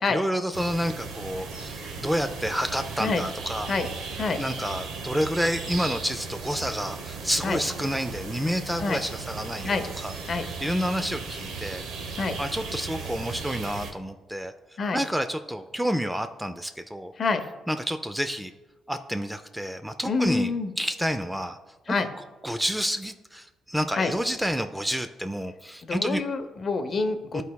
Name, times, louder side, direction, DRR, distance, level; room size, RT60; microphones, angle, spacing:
voice 1, 0.1-3.7 4.4-10.1 10.6-11.8 12.4-14.5 14.9-17.1 17.7-18.5 18.9-20.5 20.8-21.6 21.9-22.0 22.4-26.2 27.3-27.4, equal, 5° right, 8 dB, 0.3 m, -29 dB
sound 1, 0.5-13.9, right 4 dB, 80° right, 0.9 m, -36 dB
voice 2, 20.1-20.7 21.9-22.1 24.0-24.1 25.8-27.4, left 4 dB, 45° left, 8 dB, 0.7 m, -26 dB
11.5 x 4.0 x 2.2 m, 1.1 s
cardioid pair, 90°, 0 cm